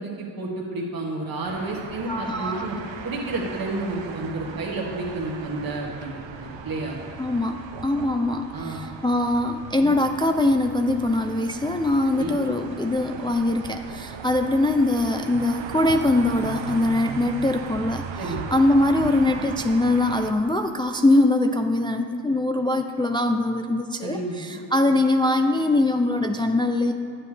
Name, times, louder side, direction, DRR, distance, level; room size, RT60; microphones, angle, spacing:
voice 1, 0.0-2.8 3.0-7.0 8.5-8.8 9.8-9.9 12.1-12.3 18.1-18.5 24.0-24.6, right 2 dB, 50° right, -3 dB, 1.5 m, -31 dB
sound 1, 1.4-20.3, right 6 dB, 80° right, 0.7 m, -38 dB
voice 2, 2.1-2.8 7.2-18.0 18.5-26.9, left 2 dB, 10° left, 5 dB, 0.3 m, -22 dB
10.0 x 9.1 x 3.3 m, 2.6 s
cardioid pair, 65°, 44 cm